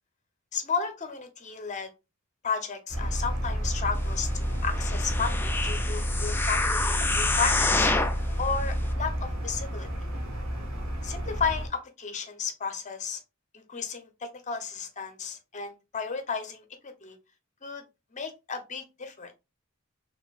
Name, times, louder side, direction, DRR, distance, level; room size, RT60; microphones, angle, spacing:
voice 1, 0.5-1.9 2.4-6.6 7.2-7.9 8.4-9.9 11.0-13.2 13.5-17.2 17.6-17.8 18.1-19.3, left 5 dB, 35° left, 0.8 m, -33 dB
sound 1, 2.9-11.7, equal, 80° right, 1.5 m, -30 dB
sound 2, 4.7-8.2 8.8-8.9, left 3 dB, 10° left, 0.3 m, -27 dB
4.2 x 3.4 x 2.4 m
head